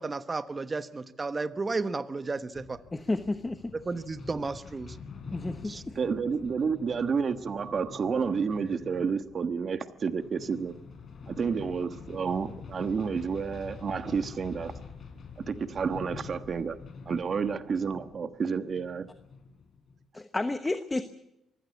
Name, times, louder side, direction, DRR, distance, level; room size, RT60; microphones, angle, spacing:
voice 1, 0.0-2.8 3.7-5.0 5.6-5.8, right 3 dB, 30° right, 12 dB, 1.1 m, -33 dB
sound 1, 2.5-20.1, left 5 dB, 55° left, 3.9 m, -46 dB
voice 2, 2.9-3.7 5.3-6.0 20.1-21.0, left 2 dB, 20° left, 10 dB, 1.1 m, -31 dB
voice 3, 5.9-10.8 11.3-14.7 15.4-16.8 17.1-19.1, right 5 dB, 45° right, 10 dB, 1.3 m, -30 dB
24.0 x 16.0 x 8.4 m, 0.86 s
cardioid pair, 90°, 0 cm